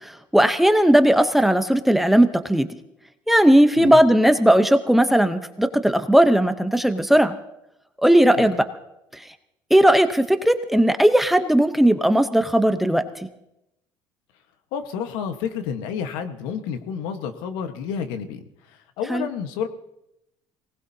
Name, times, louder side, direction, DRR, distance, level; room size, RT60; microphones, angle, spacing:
voice 1, 0.0-2.7 3.3-7.3 8.0-8.6 9.1-9.2 9.7-13.3 19.1-19.3, right 1 dB, ahead, 9 dB, 0.8 m, -17 dB
voice 2, 14.7-19.7, left 7 dB, 85° left, 8 dB, 1.3 m, -30 dB
24.0 x 18.5 x 2.8 m, 0.86 s
cardioid pair, 120°, 8 cm